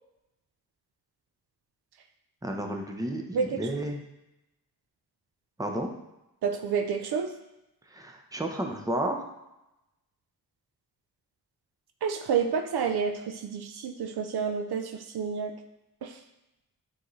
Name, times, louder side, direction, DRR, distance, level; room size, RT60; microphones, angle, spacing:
voice 1, 2.4-4.0 5.6-5.9 7.9-9.2, right 1 dB, 10° right, 2 dB, 0.8 m, -32 dB
voice 2, 6.4-7.3 12.0-15.5 16.0-16.2, right 6 dB, 80° right, 6 dB, 0.7 m, -29 dB
8.5 x 4.0 x 3.2 m, 0.93 s
wide cardioid pair, 90°, 38 cm